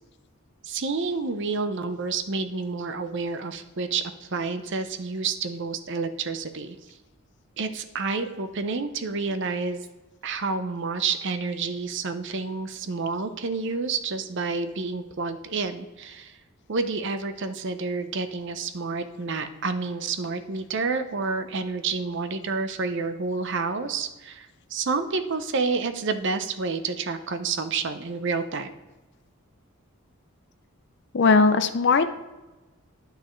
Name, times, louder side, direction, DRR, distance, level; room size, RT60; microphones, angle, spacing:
voice 1, 0.6-6.8 7.6-9.9 10.2-16.4 16.7-28.7, right 4 dB, 55° right, 10 dB, 0.6 m, -29 dB
voice 2, 31.1-32.2, left 4 dB, 50° left, 9 dB, 0.5 m, -19 dB
9.6 x 6.4 x 3.1 m, 1.1 s
head